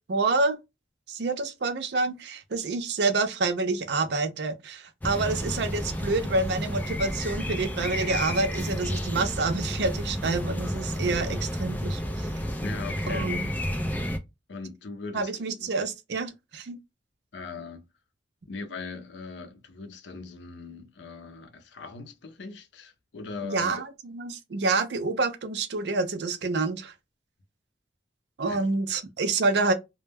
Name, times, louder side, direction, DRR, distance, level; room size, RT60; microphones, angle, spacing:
voice 1, 0.1-0.6 1.1-12.3 13.1-13.5 15.1-16.8 23.4-26.9 28.4-29.7, right 3 dB, 70° right, 0.5 m, -28 dB
sound 1, 5.0-14.2, equal, 10° left, 0.3 m, -31 dB
voice 2, 12.6-13.3 14.5-15.7 17.3-17.9 18.5-23.8 28.5-28.6 28.9-29.0, left 4 dB, 75° left, 0.5 m, -40 dB
2.1 x 2.1 x 3.2 m
head